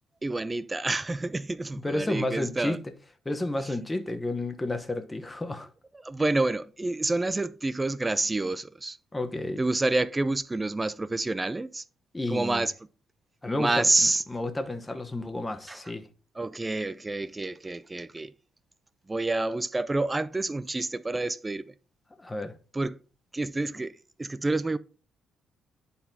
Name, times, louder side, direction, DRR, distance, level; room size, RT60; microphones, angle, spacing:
voice 1, 0.2-2.8 6.0-9.0 9.6-11.8 12.3-12.7 13.6-14.2 15.7-15.8 16.4-18.3 19.1-21.7 22.7-23.0 23.3-24.8, right 2 dB, 20° right, 0.4 m, -28 dB
voice 2, 1.8-2.8 3.2-5.7 9.1-9.6 12.1-12.6 13.4-13.9 14.3-16.1 22.2-22.6, left 2 dB, 15° left, 1.0 m, -31 dB
11.0 x 4.2 x 2.8 m
cardioid pair, 90°, 0 cm